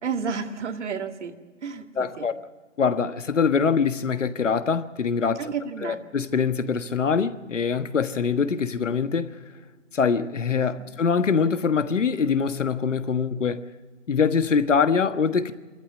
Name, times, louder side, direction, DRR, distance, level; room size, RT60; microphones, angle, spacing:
voice 1, 0.0-2.3 5.4-6.0, right 6 dB, 65° right, 2.2 m, -31 dB
voice 2, 2.0-2.3 2.8-5.5 5.8-9.4 9.9-13.7 14.1-15.5, left 6 dB, 70° left, 1.5 m, -23 dB
26.0 x 14.5 x 8.4 m
figure-of-eight pair, 140°, 38 cm